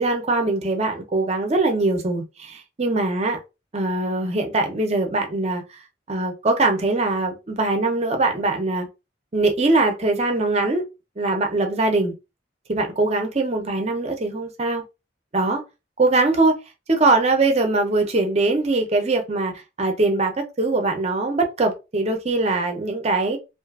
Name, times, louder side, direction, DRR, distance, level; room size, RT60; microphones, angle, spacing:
voice 1, 0.0-3.4 3.7-5.6 6.1-8.9 9.3-10.8 11.2-12.1 12.7-14.8 15.3-15.6 16.0-16.5 16.9-23.4, right 2 dB, 35° right, 0.6 m, -22 dB
2.5 x 2.4 x 2.3 m
head